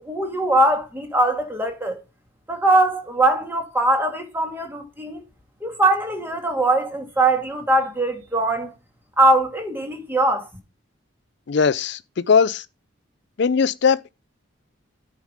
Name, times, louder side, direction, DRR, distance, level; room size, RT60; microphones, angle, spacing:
voice 1, 0.0-2.0 2.5-5.2 5.6-8.7 9.2-10.5, right 2 dB, 10° right, 1.9 m, -21 dB
voice 2, 11.5-12.6 13.4-14.1, left 6 dB, 60° left, 0.4 m, -19 dB
9.9 x 4.9 x 5.0 m
head